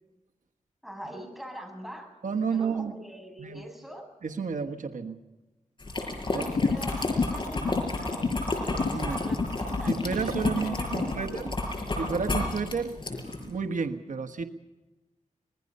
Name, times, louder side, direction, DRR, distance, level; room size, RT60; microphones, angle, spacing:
voice 1, 0.8-2.1 2.4-4.0 6.3-9.4 9.8-11.5, equal, ahead, 2 dB, 7.8 m, -43 dB
voice 2, 2.2-2.9 3.4-3.6 4.2-5.2 6.3-6.5 8.9-9.2 9.8-11.5 12.0-13.0 13.4-14.4, right 5 dB, 85° right, 6 dB, 1.4 m, -31 dB
sound 1, 5.8-13.5, left 2 dB, 40° left, 6.1 m, -32 dB
sound 2, 6.4-11.2, left 4 dB, 65° left, 1.1 m, -30 dB
25.5 x 21.5 x 5.5 m, 1.1 s
wide cardioid pair, 95°, 13 cm